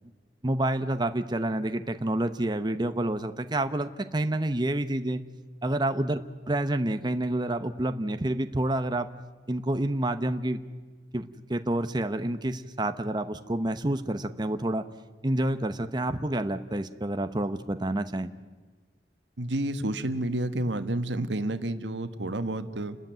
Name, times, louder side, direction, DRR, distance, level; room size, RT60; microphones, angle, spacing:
voice 1, 0.4-5.2 5.6-6.2 6.5-9.1 9.5-10.6 11.1-14.8 15.2-18.3, right 1 dB, 25° right, 9 dB, 0.9 m, -28 dB
voice 2, 19.4-23.0, right 1 dB, 90° right, 10 dB, 1.4 m, -30 dB
29.5 x 13.5 x 9.2 m, 1.4 s
head